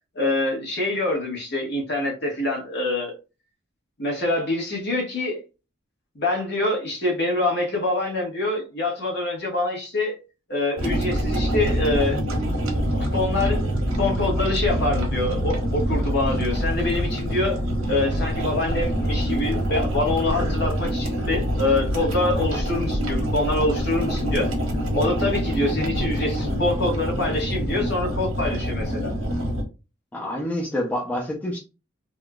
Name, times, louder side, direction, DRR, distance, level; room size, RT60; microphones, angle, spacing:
voice 1, 0.1-3.2 4.0-5.4 6.1-10.2 10.5-12.2 13.1-17.6 17.9-24.5 24.9-29.2, left 2 dB, 55° left, 1.3 m, -25 dB
sound 1, 10.8-29.6, equal, 90° right, 1.2 m, -25 dB
voice 2, 30.1-31.6, left 1 dB, 10° left, 0.5 m, -27 dB
3.5 x 2.3 x 2.3 m
head